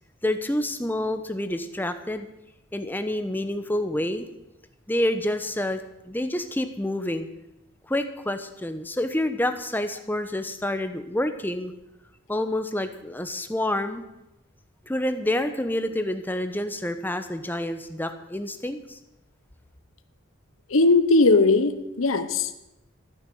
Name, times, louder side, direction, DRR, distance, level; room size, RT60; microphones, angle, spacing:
voice 1, 0.2-2.3 2.7-4.3 4.9-7.3 7.9-11.7 12.3-14.0 14.9-19.0, left 1 dB, 10° left, 8 dB, 0.9 m, -28 dB
voice 2, 20.7-22.5, left 3 dB, 85° left, 10 dB, 1.0 m, -19 dB
14.0 x 9.4 x 7.8 m, 0.91 s
head